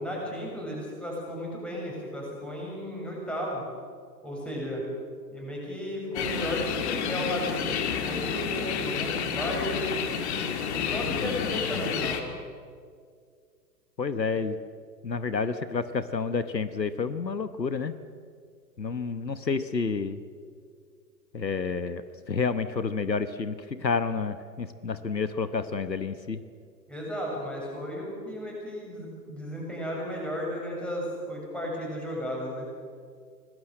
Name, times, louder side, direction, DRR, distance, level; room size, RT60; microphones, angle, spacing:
voice 1, 0.0-3.6 4.2-4.8 5.3-9.8 10.6-12.2 26.9-32.7, equal, ahead, -3 dB, 7.1 m, -34 dB
sound 1, 6.1-12.2, left 7 dB, 40° left, 2.5 m, -30 dB
voice 2, 11.2-11.9 14.0-14.6 15.0-17.9 18.8-20.2 21.3-26.4, left 5 dB, 90° left, 13 dB, 1.2 m, -30 dB
25.5 x 19.0 x 7.7 m, 2.1 s
figure-of-eight pair, 115°, 49 cm